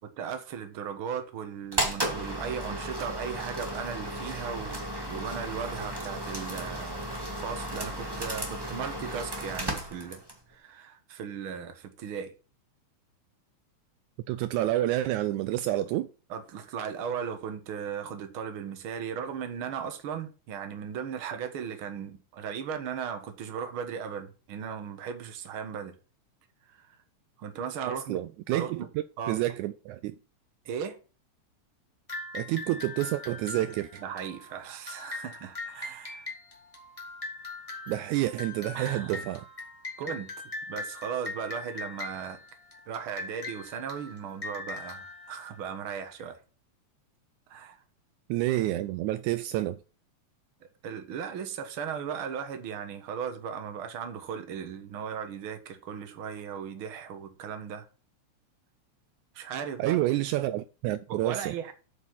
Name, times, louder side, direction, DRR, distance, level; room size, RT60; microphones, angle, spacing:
voice 1, 0.2-10.2 10.5-12.3 16.3-26.0 26.7-27.0 27.4-28.2 28.5-28.9 29.2-29.4 30.7-31.0 34.0-36.3 38.7-39.3 40.0-40.3 40.7-42.4 42.9-46.4 47.5-47.8 50.8-57.9 59.4-60.0 61.1-61.7, right 7 dB, 50° right, 1.9 m, -37 dB
sound 1, 1.7-10.4, right 1 dB, 15° right, 0.9 m, -34 dB
voice 2, 14.3-16.1 27.9-28.9 29.3-30.2 32.3-34.0 37.9-39.5 48.3-49.8 59.8-61.5, right 15 dB, 80° right, 1.9 m, -29 dB
sound 2, 32.1-46.2, left 3 dB, 15° left, 1.8 m, -41 dB
8.3 x 5.3 x 5.8 m
omnidirectional pair, 3.5 m